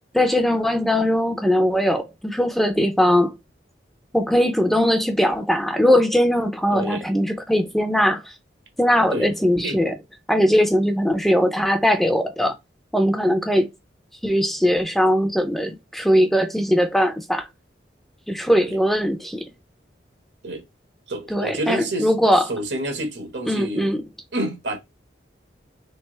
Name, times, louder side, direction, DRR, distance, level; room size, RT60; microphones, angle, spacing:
voice 1, 0.1-3.4 4.1-8.3 8.8-9.9 10.3-12.5 12.9-13.7 14.2-17.5 18.3-19.4 21.3-22.5 23.5-24.0, equal, ahead, 0.4 m, -20 dB
voice 2, 6.7-7.1 9.1-9.3 9.6-9.8 18.6-18.8 20.4-20.6 21.1-22.1 22.5-23.9 24.3-24.8, right 1 dB, 80° right, 1.3 m, -28 dB
3.3 x 3.1 x 3.1 m
head